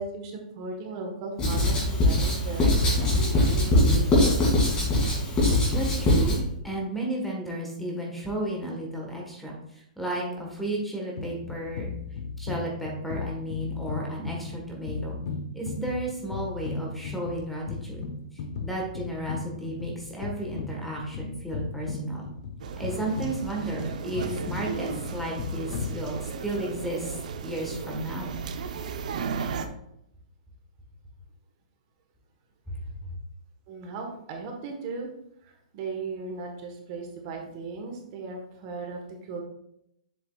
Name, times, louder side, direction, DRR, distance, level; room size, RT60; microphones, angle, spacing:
voice 1, 0.0-4.5 33.7-35.1 35.4-39.4, right 4 dB, 35° right, 2 dB, 1.2 m, -37 dB
Writing, 1.4-6.4, left 1 dB, 20° left, 2.4 m, -22 dB
voice 2, 5.7-11.9 12.4-15.2 15.5-18.0 18.6-22.2 22.8-28.3 32.7-32.8, right 1 dB, 5° left, -2 dB, 1.3 m, -33 dB
sound 1, 11.2-26.5, left 4 dB, 55° left, 1.1 m, -36 dB
sound 2, 22.6-29.7, right 6 dB, 70° right, 0.7 m, -35 dB
7.6 x 7.0 x 2.4 m, 0.77 s
hypercardioid pair, 160°, 4 cm